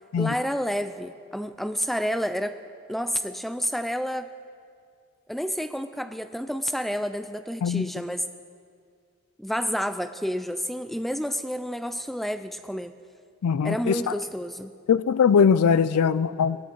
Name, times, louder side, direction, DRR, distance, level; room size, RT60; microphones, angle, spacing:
voice 1, 0.2-2.6 2.9-4.3 5.3-8.2 9.4-12.9 13.6-14.7, equal, ahead, 10 dB, 0.3 m, -29 dB
voice 2, 13.4-14.0 14.9-16.6, left 6 dB, 90° left, 16 dB, 0.4 m, -21 dB
18.0 x 14.0 x 4.6 m, 2.2 s
head